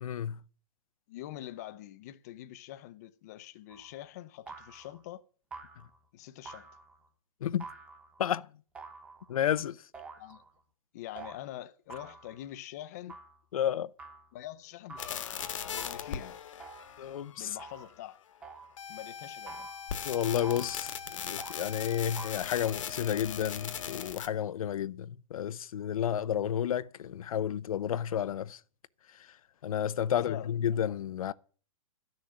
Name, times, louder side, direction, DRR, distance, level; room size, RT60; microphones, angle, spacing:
voice 1, 0.0-0.4 7.4-7.7 8.2-8.5 9.3-9.8 13.5-13.9 17.0-17.6 20.0-20.9 21.2-28.6 29.6-31.3, left 9 dB, 80° left, 0.7 m, -31 dB
voice 2, 1.1-5.2 6.1-6.7 10.2-10.4 10.9-13.2 14.3-16.4 17.4-18.2 18.9-19.7 30.1-30.5, left 13 dB, 30° left, 0.6 m, -45 dB
sound 1, 3.7-4.0 4.5-5.0 5.5-6.0 6.4-7.0 7.6-8.2 8.7-9.5 9.9-10.5 11.1-11.4 11.9-12.4 13.1-13.4 14.0-14.3 14.9-15.3 15.8-16.1 16.6-17.0 17.6-18.0 18.4-18.8 19.5-19.9 20.4-20.8 21.4-21.7 22.1-22.4, right 4 dB, 5° right, 1.0 m, -48 dB
sound 2, 15.0-17.9 18.8-24.3, left 8 dB, 65° left, 1.5 m, -39 dB
13.0 x 6.5 x 9.4 m
hypercardioid pair, 175°, 18 cm